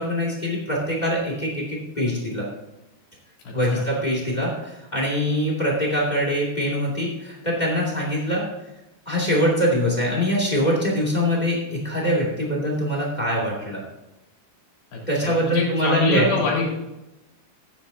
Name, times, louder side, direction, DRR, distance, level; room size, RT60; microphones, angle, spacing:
voice 1, 0.0-2.5 3.5-8.4 9.1-13.8 15.1-16.4, equal, 15° left, -3 dB, 1.8 m, -23 dB
voice 2, 3.4-3.8 14.9-16.8, left 3 dB, 70° left, -4 dB, 5.1 m, -26 dB
15.5 x 9.6 x 2.8 m, 0.96 s
omnidirectional pair, 4.9 m